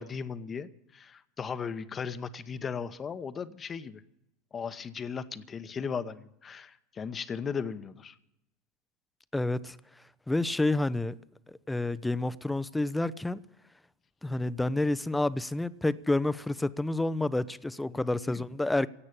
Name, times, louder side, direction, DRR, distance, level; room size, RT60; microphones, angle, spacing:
voice 1, 0.0-4.0 4.5-8.2 17.9-18.4, left 6 dB, 25° left, 0.9 m, -37 dB
voice 2, 9.3-9.8 10.3-11.2 11.5-13.4 14.2-18.9, left 2 dB, 5° left, 0.6 m, -29 dB
17.0 x 8.7 x 8.6 m
figure-of-eight pair, 85°, 0 cm